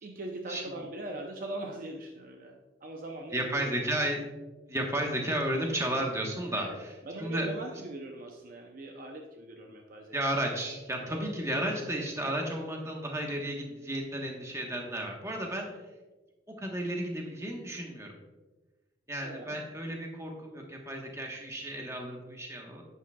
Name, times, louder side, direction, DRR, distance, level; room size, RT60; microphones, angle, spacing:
voice 1, 0.0-3.7 6.5-10.2 11.0-11.3 19.2-19.6, right 1 dB, 50° right, 2 dB, 0.6 m, -41 dB
voice 2, 3.3-4.2 4.7-6.9 7.2-7.5 10.1-15.7 16.6-18.1 19.1-22.8, right 1 dB, 15° right, 1 dB, 1.2 m, -33 dB
10.5 x 8.6 x 2.3 m, 1.2 s
head